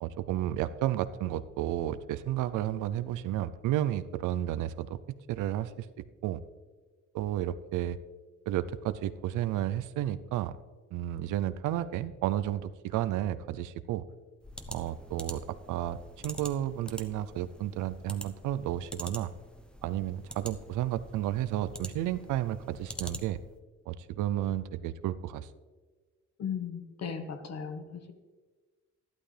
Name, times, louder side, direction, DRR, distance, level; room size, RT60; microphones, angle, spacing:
voice 1, 0.0-5.0 5.3-5.9 6.2-6.4 7.1-8.0 8.5-10.6 10.9-14.0 14.7-19.3 19.8-23.4 23.9-25.5, right 12 dB, 90° right, 14 dB, 0.6 m, -32 dB
sound 1, 14.4-23.6, equal, 5° left, 0.8 m, -46 dB
voice 2, 26.4-28.1, left 7 dB, 60° left, 7 dB, 1.4 m, -37 dB
12.5 x 11.5 x 3.3 m, 1.3 s
cardioid pair, 90°, 30 cm